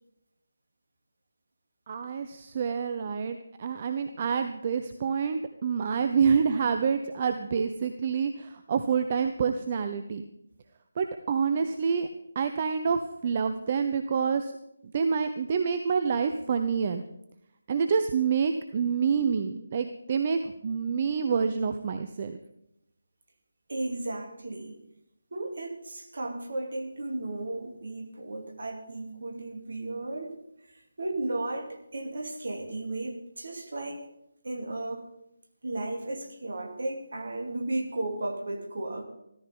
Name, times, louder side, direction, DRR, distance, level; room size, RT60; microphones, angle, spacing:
voice 1, 1.9-10.2 11.0-12.1 12.3-14.5 14.8-17.0 17.7-22.4, right 6 dB, 30° right, 0.7 m, -27 dB
voice 2, 23.7-24.8 25.3-30.4 31.0-34.0 34.4-35.1 35.6-39.0, right 2 dB, 50° right, 2.5 m, -34 dB
15.0 x 14.0 x 5.4 m
figure-of-eight pair, 155°, 0 cm